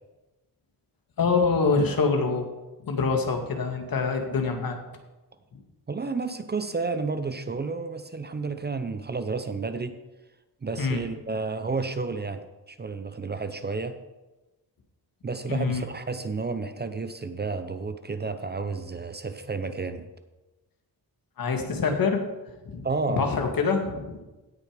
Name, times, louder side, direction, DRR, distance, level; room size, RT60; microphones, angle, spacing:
voice 1, 1.2-2.5 2.8-4.8 5.5-5.6 10.8-11.0 15.5-15.8 21.4-22.2 22.6-24.1, left 4 dB, 60° left, 4 dB, 2.0 m, -25 dB
voice 2, 5.9-9.9 10.6-14.0 15.2-20.1 22.8-23.3, right 4 dB, 25° right, 9 dB, 0.7 m, -31 dB
17.0 x 6.4 x 5.1 m, 1.1 s
wide cardioid pair, 120°, 38 cm